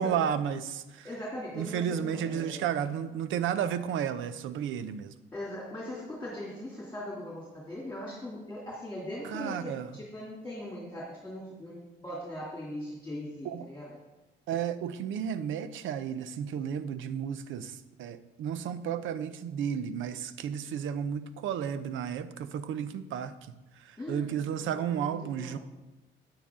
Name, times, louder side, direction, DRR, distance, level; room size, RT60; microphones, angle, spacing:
voice 1, 0.0-1.1 1.5-5.1 9.2-9.9 13.4-13.7 14.5-25.6, right 8 dB, 80° right, 13 dB, 0.6 m, -33 dB
voice 2, 1.0-2.7 5.3-14.0 24.0-25.6, left 1 dB, 10° left, -4 dB, 2.6 m, -40 dB
9.3 x 8.8 x 3.7 m, 1.0 s
cardioid pair, 90°, 20 cm